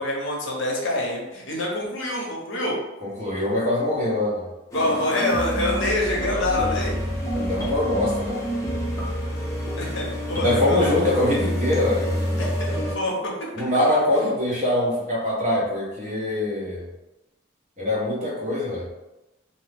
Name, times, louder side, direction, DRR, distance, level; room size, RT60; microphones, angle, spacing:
voice 1, 0.0-2.8 4.7-7.0 9.7-11.2 12.4-13.1, left 1 dB, 65° left, -2 dB, 0.7 m, -26 dB
voice 2, 3.0-4.5 7.3-8.4 10.4-12.4 13.5-16.9 17.8-18.9, left 1 dB, 35° right, -7 dB, 1.0 m, -23 dB
sound 1, 4.7-12.9, equal, 15° left, 0.6 m, -28 dB
sound 2, 5.3-10.2 10.6-10.7, equal, 5° right, 0.9 m, -35 dB
2.6 x 2.0 x 3.3 m, 1.0 s
head